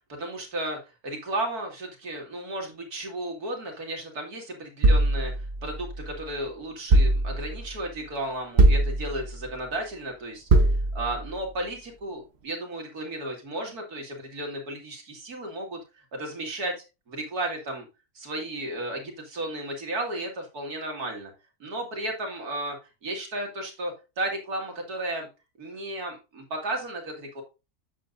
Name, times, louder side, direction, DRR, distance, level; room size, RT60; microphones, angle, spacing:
voice 1, 0.1-10.7 10.9-15.8 16.1-16.7 17.1-17.9 18.1-21.3 21.6-22.8 23.0-25.3 25.6-27.4, right 1 dB, 75° right, 2 dB, 2.9 m, -34 dB
sound 1, 4.8-6.2 6.9-7.7 8.6-9.5 10.5-11.3, right 2 dB, 45° right, 1.3 m, -22 dB
8.4 x 7.9 x 2.6 m, 0.27 s
omnidirectional pair, 1.6 m